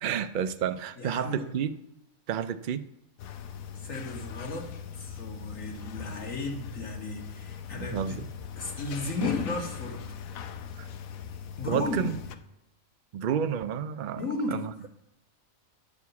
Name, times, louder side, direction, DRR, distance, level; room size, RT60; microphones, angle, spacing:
voice 1, 0.0-1.7 2.3-2.9 7.8-8.3 10.8-10.9 11.7-12.2 13.1-14.2 14.5-14.7, right 8 dB, 75° right, 10 dB, 0.4 m, -30 dB
voice 2, 1.0-1.5 3.7-8.2 8.6-10.1 11.6-12.1 14.2-14.6, left 2 dB, 70° left, 0 dB, 2.0 m, -35 dB
sound 1, 3.2-12.4, left 8 dB, 85° left, 1.1 m, -39 dB
9.7 x 4.7 x 7.0 m, 0.90 s
omnidirectional pair, 1.4 m